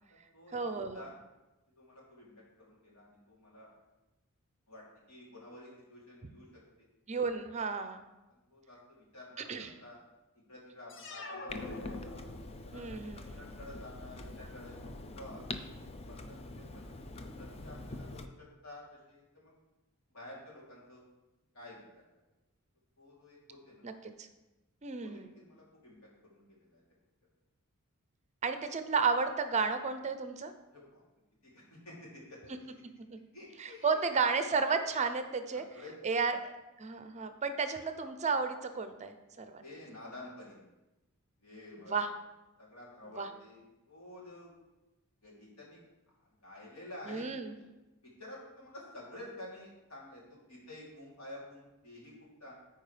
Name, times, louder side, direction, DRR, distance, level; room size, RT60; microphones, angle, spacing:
voice 1, 0.5-1.1 7.1-8.0 9.5-9.7 12.7-13.4 23.8-23.9 24.2-24.3 24.8-25.3 28.4-30.5 33.1-33.2 33.6-35.6 36.0-36.4 36.8-39.6 41.9-42.1 43.2-43.3 47.1-47.5, right 5 dB, 35° right, 9 dB, 0.5 m, -32 dB
voice 2, 1.7-2.3 2.6-3.7 4.7-6.5 6.8-6.9 8.3-10.0 10.5-12.1 12.6-12.9 13.1-15.6 16.1-18.3 18.6-19.5 20.1-21.0 21.5-22.0 23.0-23.8 25.0-26.0 26.2-26.8 30.7-31.0 31.4-32.8 33.3-34.1 35.5-36.3 39.6-40.6 41.4-42.0 42.6-43.6 43.9-44.5 45.2-45.8 46.2-47.7 48.0-52.1 52.4-52.5, left 1 dB, 80° left, -5 dB, 3.1 m, -51 dB
sound 1, 10.9-12.8, left 2 dB, 60° left, 0.8 m, -45 dB
Clock, 11.5-18.3, left 2 dB, 30° left, 0.5 m, -44 dB
13.5 x 4.6 x 3.3 m, 1.0 s
head